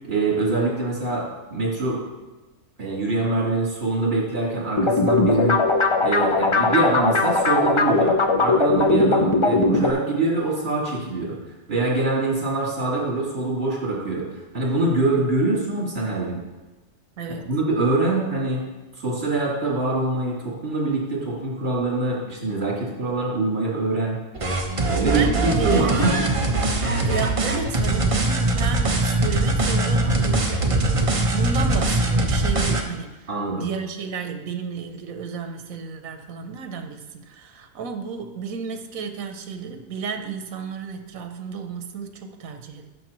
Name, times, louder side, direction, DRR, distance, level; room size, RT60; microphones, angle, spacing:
voice 1, 0.0-1.2 1.5-2.0 2.8-5.6 6.0-8.1 8.4-11.3 11.7-14.2 14.5-16.4 17.3-18.6 19.0-24.2 24.8-26.1 26.8-26.9 33.3-33.7, right 2 dB, 50° right, -7 dB, 3.5 m, -24 dB
sound 1, 4.8-9.9, left 3 dB, 45° left, 0.3 m, -19 dB
voice 2, 17.2-17.5 24.9-26.1 27.0-33.3 33.5-42.9, right 5 dB, 85° right, 6 dB, 1.2 m, -32 dB
sound 2, 24.3-32.8, right 2 dB, 30° right, 0.8 m, -22 dB
12.0 x 6.7 x 3.1 m, 1.2 s
omnidirectional pair, 1.4 m